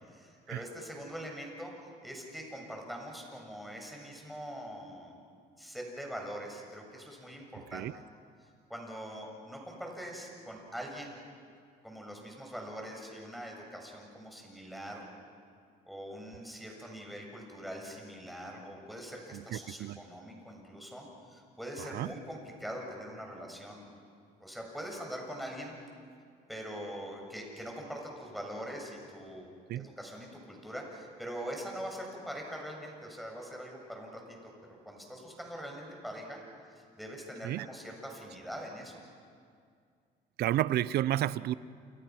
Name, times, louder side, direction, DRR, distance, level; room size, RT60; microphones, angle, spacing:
voice 1, 0.1-1.7 2.0-5.2 5.6-8.0 8.7-11.2 11.8-15.0 15.9-23.9 24.4-25.8 26.5-29.5 29.8-34.5 34.8-36.4 36.8-38.9, equal, ahead, 1 dB, 7.0 m, -43 dB
voice 2, 19.3-20.0 21.8-22.1 29.7-29.9 37.4-37.7 40.4-41.5, right 13 dB, 70° right, 18 dB, 0.7 m, -31 dB
29.5 x 28.5 x 6.1 m, 2.2 s
cardioid pair, 110°, 17 cm